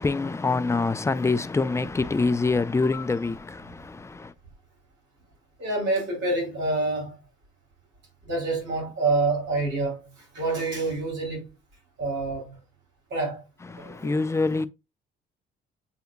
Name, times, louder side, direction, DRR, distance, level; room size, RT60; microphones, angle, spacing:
voice 1, 0.0-4.3 13.7-14.7, left 3 dB, 15° left, 0.5 m, -25 dB
voice 2, 5.6-7.2 8.2-11.5 12.0-12.6 13.1-13.4 13.8-14.1, right 2 dB, 65° right, 3.1 m, -27 dB
7.9 x 2.7 x 2.4 m
cardioid pair, 90°, 20 cm